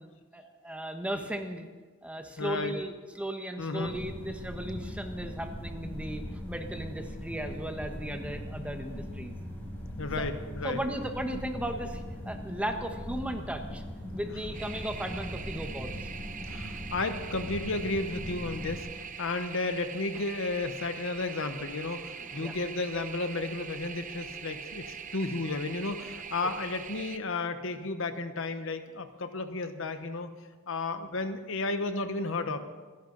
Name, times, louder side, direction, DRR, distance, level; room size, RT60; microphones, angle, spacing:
voice 1, 0.0-1.7 2.0-9.4 10.2-10.3 10.6-13.8 14.1-16.1 22.2-22.5, right 1 dB, 5° right, 5 dB, 1.2 m, -36 dB
voice 2, 2.4-2.7 3.6-3.9 10.0-10.8 16.5-30.3 30.7-32.6, left 3 dB, 65° left, 9 dB, 1.1 m, -33 dB
sound 1, 3.8-18.8, equal, 10° left, 4.7 m, -40 dB
sound 2, 14.5-27.2, right 7 dB, 40° right, 0.7 m, -42 dB
27.0 x 11.0 x 4.0 m, 1.4 s
head